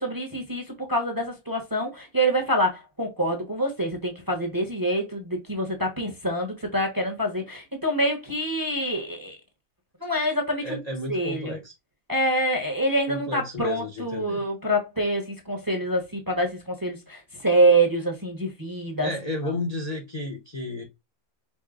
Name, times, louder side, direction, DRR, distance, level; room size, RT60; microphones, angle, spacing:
voice 1, 0.0-9.4 10.0-10.8 11.1-11.6 12.1-19.1, right 1 dB, 15° right, 0.9 m, -26 dB
voice 2, 10.6-11.7 13.1-14.4 19.0-20.8, left 1 dB, 35° left, 0.8 m, -32 dB
5.3 x 2.1 x 3.7 m
omnidirectional pair, 1.5 m